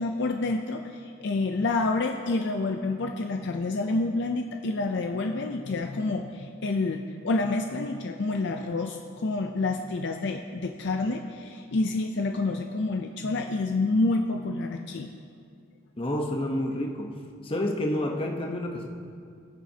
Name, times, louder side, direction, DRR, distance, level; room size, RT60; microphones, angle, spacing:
voice 1, 0.0-15.1, left 3 dB, 55° left, 4 dB, 0.5 m, -28 dB
voice 2, 16.0-17.2 17.4-18.9, left 1 dB, 25° left, 1 dB, 0.9 m, -29 dB
21.5 x 7.3 x 2.8 m, 2.3 s
head